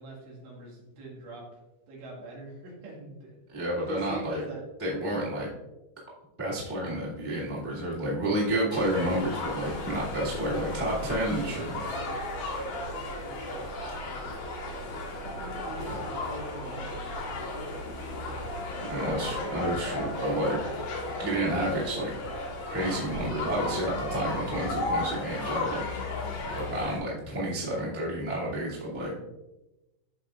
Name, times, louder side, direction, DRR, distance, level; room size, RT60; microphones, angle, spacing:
voice 1, 0.0-1.4 1.9-3.4 3.7-4.7 11.0-12.4 13.0-14.8 15.2-17.7, right 2 dB, 75° right, -4 dB, 4.3 m, -44 dB
voice 2, 3.5-4.4 4.8-5.5 6.4-11.8 18.9-20.6 21.2-22.1 22.6-25.8 26.5-29.1, right 1 dB, 15° right, -8 dB, 0.5 m, -30 dB
sound 1, 8.7-27.0, left 2 dB, 55° left, 3.8 m, -34 dB
14.0 x 5.1 x 2.5 m, 1.0 s
omnidirectional pair, 5.2 m